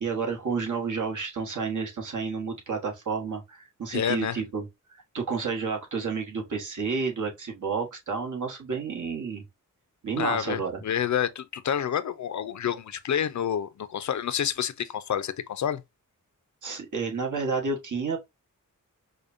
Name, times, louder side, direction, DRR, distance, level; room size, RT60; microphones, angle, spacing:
voice 1, 0.0-4.7 5.1-9.4 10.0-10.8 16.6-18.2, right 5 dB, 65° right, 1.3 m, -30 dB
voice 2, 3.9-4.4 10.2-15.8, left 9 dB, 60° left, 0.5 m, -28 dB
4.9 x 2.2 x 2.5 m
wide cardioid pair, 105°, 33 cm